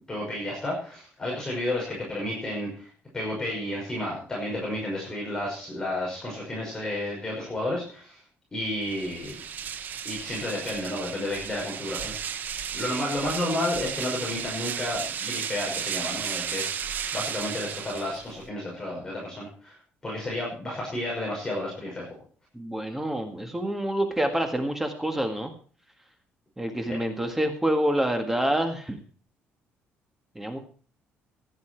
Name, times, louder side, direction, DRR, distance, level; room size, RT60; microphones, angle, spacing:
voice 1, 0.1-8.2 8.5-9.4 10.0-12.1 12.7-16.8 17.1-19.8 20.0-22.1 26.9-27.0, left 1 dB, 15° left, -3 dB, 5.9 m, -31 dB
sound 1, 8.8-18.5, right 8 dB, 45° right, 0.9 m, -34 dB
voice 2, 22.5-25.5 26.6-29.0 30.3-30.6, right 1 dB, 5° right, 5 dB, 1.7 m, -27 dB
16.0 x 11.0 x 4.6 m, 0.42 s
cardioid pair, 160°, 4 cm